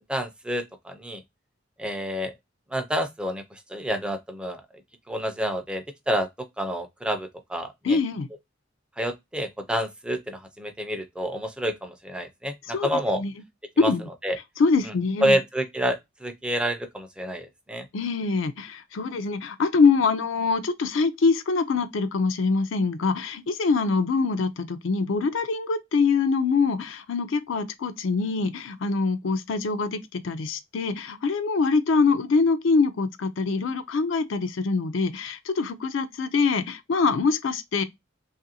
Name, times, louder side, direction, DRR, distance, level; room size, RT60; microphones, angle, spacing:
voice 1, 0.1-1.2 1.8-2.3 2.7-4.6 5.1-6.3 6.6-8.0 9.0-12.5 12.8-13.2 13.8-13.9 14.2-14.4 15.2-17.9, equal, 5° right, 0.4 m, -28 dB
voice 2, 7.8-8.3 12.7-12.9 13.2-13.3 13.8-14.1 14.6-15.4 17.9-37.8, left 4 dB, 70° left, 0.4 m, -24 dB
3.0 x 2.5 x 2.7 m
head